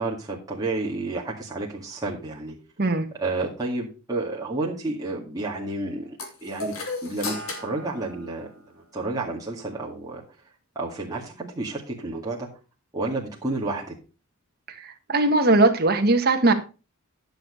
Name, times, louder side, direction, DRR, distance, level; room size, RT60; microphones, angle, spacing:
voice 1, 0.0-2.6 3.2-6.8 7.0-8.5 8.7-10.2 10.8-12.5 12.9-13.9, right 2 dB, 15° right, 2.2 m, -30 dB
sound 1, 6.2-8.9, left 2 dB, 65° left, 2.5 m, -35 dB
voice 2, 14.7-16.5, right 2 dB, 45° right, 1.4 m, -20 dB
11.0 x 6.6 x 5.0 m
head